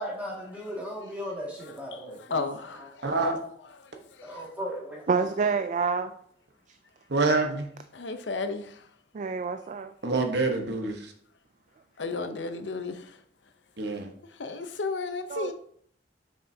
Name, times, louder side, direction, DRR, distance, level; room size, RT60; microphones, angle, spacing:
voice 1, 0.0-2.4 2.8-2.9 4.2-5.2, equal, 10° right, 2.0 m, -37 dB
voice 2, 1.9-3.1 3.8-4.4 7.9-8.9 12.0-13.2 14.3-15.5, left 3 dB, 75° left, 0.7 m, -34 dB
voice 3, 3.0-3.4 7.1-7.7 10.0-11.1 13.8-14.1, right 3 dB, 65° right, 1.1 m, -26 dB
voice 4, 5.1-6.1 9.1-9.9 15.3-15.5, right 5 dB, 45° right, 0.3 m, -27 dB
7.0 x 6.2 x 2.7 m
head